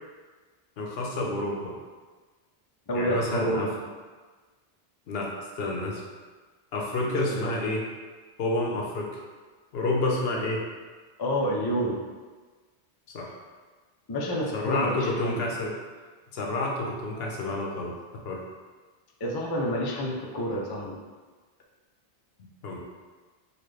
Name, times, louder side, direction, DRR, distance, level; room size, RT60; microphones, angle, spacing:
voice 1, 0.8-1.7 2.9-3.7 5.1-6.0 6.7-7.9 8.4-9.2 9.7-10.6 13.1-13.3 14.5-15.7 16.3-18.4 22.6-22.8, left 2 dB, 75° left, -1 dB, 0.9 m, -29 dB
voice 2, 2.9-3.7 7.3-7.5 11.2-12.0 14.1-15.4 19.2-21.0, equal, 40° left, -2 dB, 0.3 m, -28 dB
4.0 x 2.2 x 3.2 m, 1.4 s
omnidirectional pair, 1.1 m